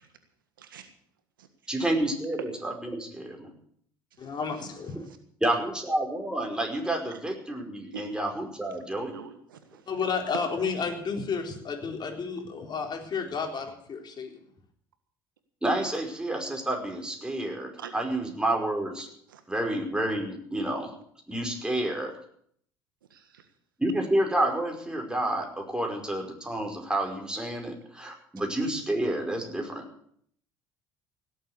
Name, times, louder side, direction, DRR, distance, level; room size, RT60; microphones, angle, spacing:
voice 1, 1.7-3.5 5.4-9.1 15.6-19.1 19.5-20.9 21.3-22.1 23.8-29.8, right 1 dB, 5° right, 2 dB, 5.2 m, -29 dB
voice 2, 4.2-5.0 9.9-14.4, left 5 dB, 40° left, 3 dB, 4.0 m, -32 dB
voice 3, 7.9-8.3 9.1-9.8 17.8-18.0 19.3-19.4 23.1-23.4, right 8 dB, 90° right, 8 dB, 1.6 m, -45 dB
17.0 x 8.2 x 8.1 m, 0.65 s
hypercardioid pair, 60°, 11 cm